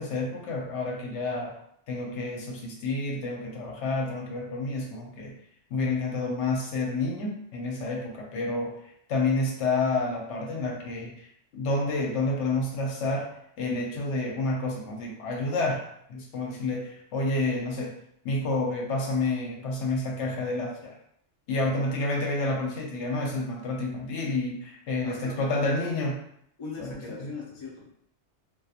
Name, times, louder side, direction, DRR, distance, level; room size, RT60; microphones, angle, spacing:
voice 1, 0.0-1.5 1.9-5.3 5.7-11.3 11.5-13.3 13.6-15.8 16.1-17.9 18.2-21.0 21.5-26.2 26.8-26.9 27.2-27.3, left 2 dB, 80° left, 0 dB, 0.9 m, -29 dB
voice 2, 25.0-26.1 26.6-27.9, left 3 dB, 40° left, -3 dB, 0.4 m, -40 dB
2.8 x 2.2 x 2.4 m, 0.71 s
omnidirectional pair, 1.2 m